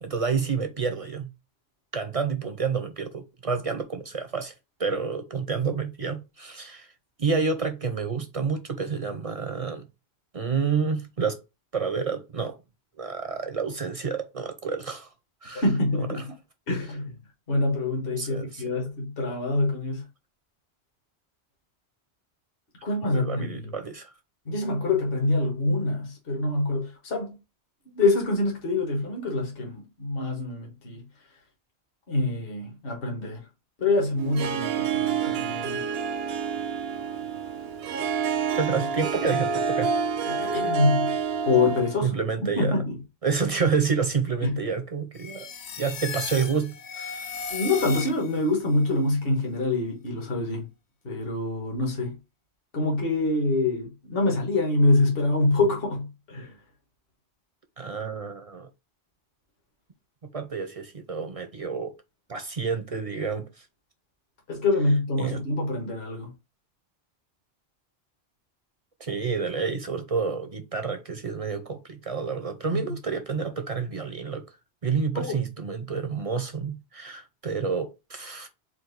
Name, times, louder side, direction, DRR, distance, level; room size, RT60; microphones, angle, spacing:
voice 1, 0.0-1.3 1.9-4.5 4.8-6.9 7.2-9.9 10.3-11.4 11.7-12.6 13.0-15.1 15.4-15.6 18.2-18.6 23.1-24.1 38.6-39.9 40.5-40.7 42.0-42.7 43.2-45.5 45.8-47.3 57.8-58.7 60.3-61.9 62.3-63.5 65.2-65.4 69.0-74.4 74.8-78.5, right 5 dB, 45° right, 0.5 m, -29 dB
voice 2, 15.5-16.3 16.7-17.1 17.5-20.1 22.8-23.7 24.4-27.4 27.9-31.0 32.1-33.4 33.8-35.9 40.3-41.2 41.4-42.1 42.6-43.0 44.4-44.6 47.5-50.7 51.0-52.2 52.7-56.5 64.5-66.3 72.7-72.8 75.1-75.3, left 2 dB, 60° left, 1.5 m, -25 dB
Harp, 34.2-42.1, right 6 dB, 70° right, 0.8 m, -28 dB
sound 1, 45.1-48.5, left 5 dB, 85° left, 1.1 m, -36 dB
4.6 x 2.5 x 3.9 m
omnidirectional pair, 1.1 m